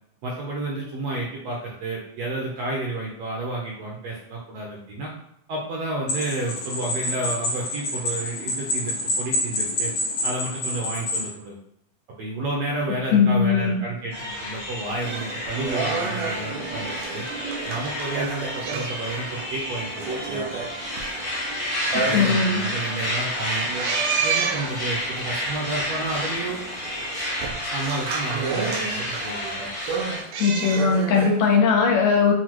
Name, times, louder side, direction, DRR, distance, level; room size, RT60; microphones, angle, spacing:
voice 1, 0.2-5.1 5.5-9.9 10.2-11.6 12.2-17.3 17.7-20.5 21.9-23.7 24.2-26.6 27.7-29.7 30.1-30.2, right 2 dB, 70° right, -3 dB, 1.6 m, -31 dB
sound 1, 6.1-11.3, left 1 dB, 55° left, 1.5 m, -27 dB
voice 2, 13.1-13.8 14.4-14.6 21.9-22.6 30.4-32.3, left 5 dB, 75° left, 0 dB, 2.1 m, -20 dB
sound 2, 14.1-30.2, left 1 dB, 30° left, 0.5 m, -30 dB
sound 3, 15.0-31.6, right 5 dB, 90° right, 1.5 m, -31 dB
6.2 x 2.3 x 3.0 m, 0.75 s
omnidirectional pair, 3.6 m